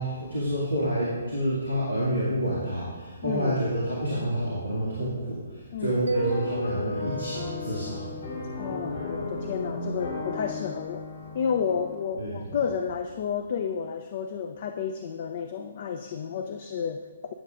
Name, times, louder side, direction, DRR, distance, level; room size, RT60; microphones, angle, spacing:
voice 1, 0.0-8.2 12.2-12.6, equal, 85° left, -6 dB, 2.2 m, -29 dB
voice 2, 3.2-3.6 5.7-6.0 8.6-11.1 11.3-17.3, left 7 dB, 40° left, 8 dB, 0.4 m, -31 dB
sound 1, 6.1-11.9, left 1 dB, 65° left, 3.3 m, -35 dB
Mallet percussion, 6.1-9.5, equal, 75° right, 0.6 m, -36 dB
17.5 x 7.3 x 2.5 m, 1.4 s
figure-of-eight pair, 130°, 0 cm